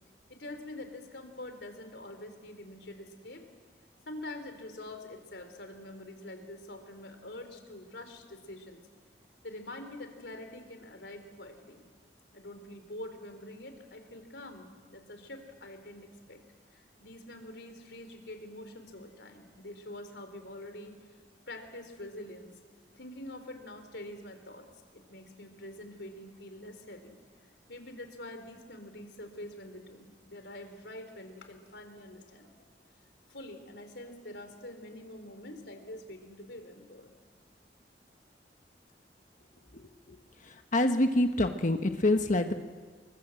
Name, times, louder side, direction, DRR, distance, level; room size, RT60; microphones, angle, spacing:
voice 1, 0.3-3.4 4.1-8.8 9.4-11.8 12.3-16.4 16.7-21.0 21.5-22.5 22.9-24.7 24.9-27.2 27.7-32.5 33.3-37.1, left 1 dB, 80° left, 7 dB, 3.6 m, -45 dB
voice 2, 40.7-42.5, left 1 dB, 45° left, 6 dB, 1.3 m, -26 dB
27.5 x 23.5 x 7.8 m, 1.5 s
head